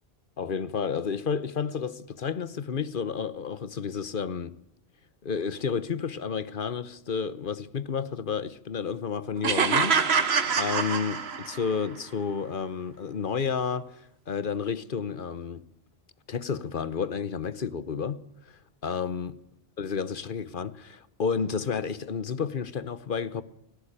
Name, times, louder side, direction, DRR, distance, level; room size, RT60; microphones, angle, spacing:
voice 1, 0.4-4.5 5.2-15.6 16.3-18.2 18.8-19.3 19.8-23.4, left 6 dB, 55° left, 1.1 m, -31 dB
sound 1, 9.4-11.8, right 6 dB, 75° right, 1.5 m, -25 dB
18.5 x 16.5 x 8.8 m
omnidirectional pair, 1.1 m